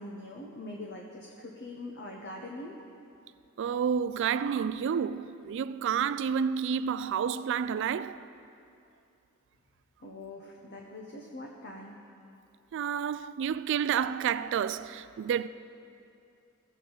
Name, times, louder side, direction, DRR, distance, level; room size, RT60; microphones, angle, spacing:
voice 1, 0.0-2.8 10.0-11.9, left 1 dB, 50° left, 0.8 m, -43 dB
voice 2, 3.6-8.2 12.7-15.5, right 7 dB, 60° right, 0.3 m, -30 dB
16.5 x 7.5 x 3.9 m
head